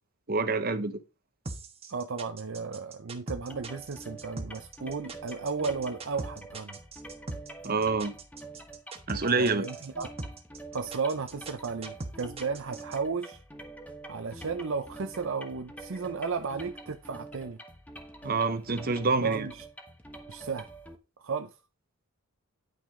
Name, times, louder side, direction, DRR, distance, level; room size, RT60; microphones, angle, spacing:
voice 1, 0.3-1.0 7.6-8.1 9.1-9.7 18.2-19.5, right 3 dB, 45° right, 0.9 m, -27 dB
sound 1, 1.4-13.0, right 2 dB, 25° right, 1.3 m, -40 dB
voice 2, 1.9-6.8 9.4-10.1 10.7-13.4 14.1-17.6 19.2-19.6 20.3-20.7 21.2-21.6, right 5 dB, 60° right, 0.6 m, -34 dB
sound 2, 3.5-21.0, right 2 dB, 5° left, 1.1 m, -46 dB
10.0 x 6.2 x 3.7 m
head